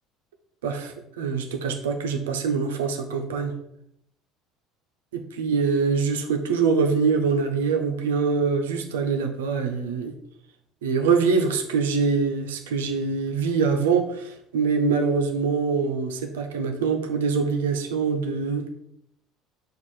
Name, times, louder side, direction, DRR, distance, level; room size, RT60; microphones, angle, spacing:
voice 1, 0.6-3.5 5.1-10.1 10.8-18.7, right 5 dB, 85° right, 5 dB, 0.6 m, -24 dB
4.7 x 2.4 x 4.2 m, 0.77 s
hypercardioid pair, 75°, 0 cm